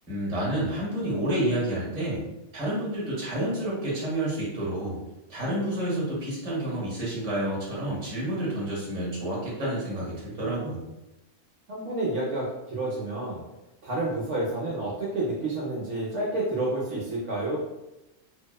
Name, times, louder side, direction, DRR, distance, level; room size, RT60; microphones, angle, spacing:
voice 1, 0.1-2.2 2.5-5.0 5.3-10.8, right 1 dB, 35° right, -6 dB, 1.0 m, -29 dB
voice 2, 11.7-13.4 13.8-17.6, right 2 dB, 70° right, -5 dB, 0.9 m, -29 dB
2.7 x 2.0 x 2.2 m, 0.93 s
omnidirectional pair, 1.3 m